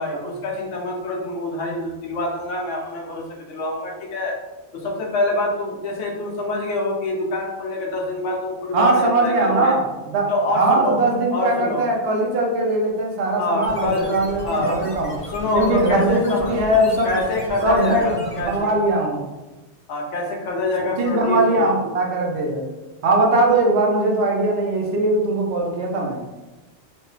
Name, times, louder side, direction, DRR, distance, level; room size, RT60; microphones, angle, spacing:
voice 1, 0.0-4.4 4.7-9.8 10.3-11.0 11.3-11.8 13.4-14.8 15.3-16.5 17.0-18.7 19.9-21.8, left 2 dB, 90° left, 0 dB, 1.0 m, -25 dB
voice 2, 8.7-15.1 15.5-17.1 17.6-19.2 21.0-22.7 23.0-26.2, right 2 dB, 70° right, 0 dB, 0.9 m, -20 dB
sound 1, 13.6-18.8, equal, 40° left, 0.5 m, -36 dB
3.1 x 2.3 x 3.0 m, 1.1 s
omnidirectional pair, 1.2 m